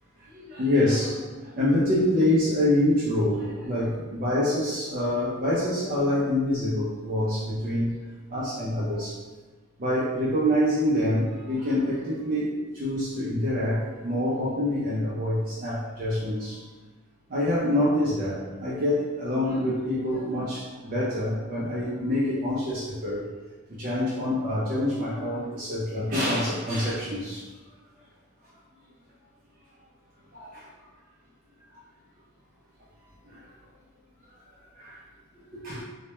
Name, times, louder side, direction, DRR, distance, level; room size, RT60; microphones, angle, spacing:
voice 1, 0.3-7.9 8.3-9.2 9.8-16.6 17.3-23.3 23.8-27.4 30.3-30.7 34.8-35.0 35.5-35.8, left 1 dB, 40° right, -8 dB, 0.4 m, -26 dB
2.1 x 2.1 x 2.9 m, 1.3 s
head